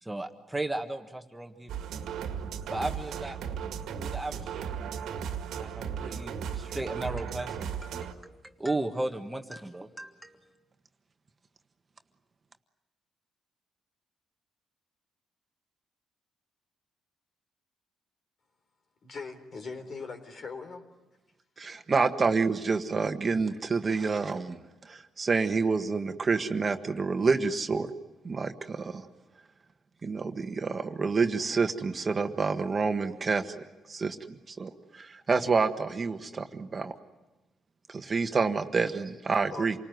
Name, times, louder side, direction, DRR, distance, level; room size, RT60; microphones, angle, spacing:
voice 1, 0.0-1.7 2.7-3.4 4.0-4.7 5.5-10.5, right 2 dB, 10° right, 4 dB, 1.6 m, -35 dB
sound 1, 1.7-8.1, right 7 dB, 85° right, 2.0 m, -36 dB
voice 2, 19.0-20.8 23.3-23.5 39.5-39.7, left 4 dB, 50° left, 6 dB, 3.7 m, -40 dB
voice 3, 21.6-24.6 24.8-27.9 28.2-29.0 30.0-33.5 33.9-34.2 34.5-36.9 37.9-39.7, right 4 dB, 35° right, 7 dB, 1.5 m, -28 dB
28.0 x 19.5 x 9.4 m, 1.1 s
cardioid pair, 90°, 0 cm